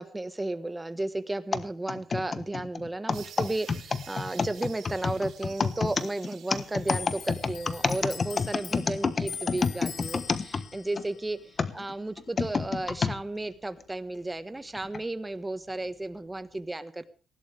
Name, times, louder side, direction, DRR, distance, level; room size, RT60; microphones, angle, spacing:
voice 1, 0.0-17.1, right 2 dB, 15° right, 11 dB, 1.6 m, -34 dB
sound 1, 1.5-11.0 11.6-13.2 13.8-13.9 14.7-15.0, left 5 dB, 40° left, 1.3 m, -29 dB
sound 2, 3.1-8.7, right 8 dB, 70° right, 3.1 m, -50 dB
Clock, 6.9-13.9 14.1-15.5 15.7-16.6, left 6 dB, 60° left, 4.1 m, -44 dB
19.5 x 16.0 x 3.6 m, 0.37 s
cardioid pair, 90°, 0 cm